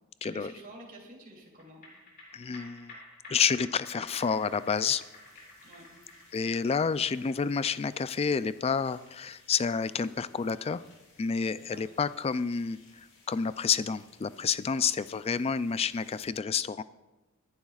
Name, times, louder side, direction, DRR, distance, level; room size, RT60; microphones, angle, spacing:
voice 1, 0.2-1.8 5.6-5.9 11.5-11.9, right 1 dB, 40° right, -1 dB, 2.9 m, -49 dB
sound 1, 1.6-14.2 14.6-14.7, left 1 dB, 45° left, 3.8 m, -54 dB
voice 2, 2.3-3.0 3.3-5.0 6.3-10.8 11.2-16.8, left 6 dB, 25° left, 15 dB, 0.3 m, -29 dB
sound 2, 4.1-16.3, left 3 dB, 60° left, 4.2 m, -61 dB
24.5 x 11.0 x 2.4 m, 1.1 s
head